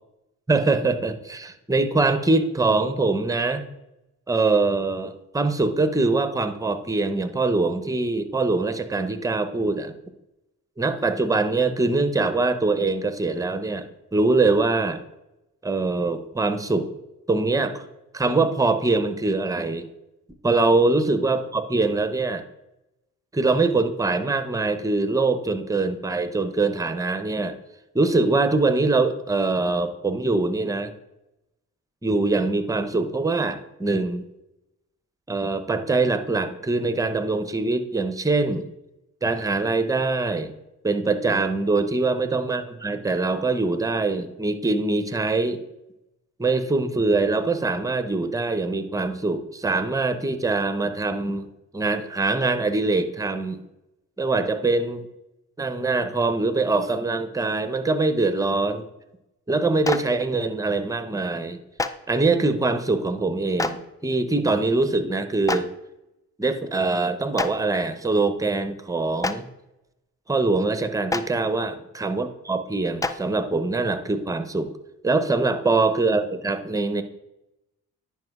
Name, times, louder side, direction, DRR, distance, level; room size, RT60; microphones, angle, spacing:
voice 1, 0.5-3.6 4.3-9.9 10.8-13.8 14.1-15.0 15.6-16.9 17.3-17.8 18.1-19.8 20.4-22.4 23.3-27.6 27.9-30.9 32.0-34.2 35.3-38.7 39.2-40.5 40.8-45.6 46.4-51.5 51.7-53.6 54.2-55.0 55.6-58.9 59.5-61.6 62.1-65.7 66.4-69.5 70.3-74.7 75.0-77.0, right 3 dB, 10° right, 9 dB, 0.8 m, -23 dB
Clapping, 59.8-60.0 61.8-61.9 63.6-63.7 65.5-65.6 67.4-67.5 69.2-69.3 71.1-71.2 73.0-73.1, left 3 dB, 10° left, 0.3 m, -24 dB
10.5 x 5.4 x 2.5 m, 0.90 s
hypercardioid pair, 45°, 41 cm